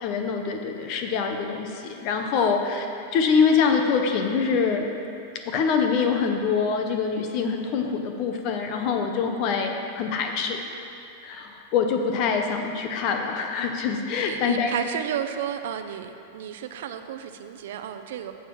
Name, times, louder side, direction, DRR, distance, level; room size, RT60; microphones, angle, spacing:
voice 1, 0.0-2.9 3.1-5.1 5.4-10.6 11.2-14.7, left 5 dB, 40° left, 4 dB, 0.8 m, -24 dB
voice 2, 14.1-18.3, right 9 dB, 65° right, 8 dB, 0.6 m, -32 dB
7.3 x 6.4 x 6.9 m, 2.6 s
supercardioid pair, 160°, 0 cm